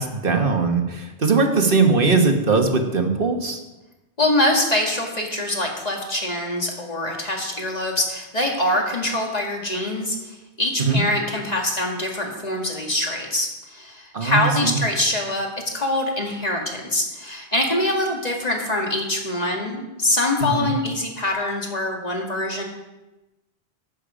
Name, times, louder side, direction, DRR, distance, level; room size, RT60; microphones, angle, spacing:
voice 1, 0.0-3.6 10.8-11.0 14.1-14.8 20.4-20.7, right 4 dB, 55° right, 4 dB, 1.5 m, -20 dB
voice 2, 4.2-22.6, left 1 dB, 40° left, 0 dB, 2.1 m, -24 dB
12.0 x 8.5 x 5.1 m, 1.0 s
omnidirectional pair, 1.1 m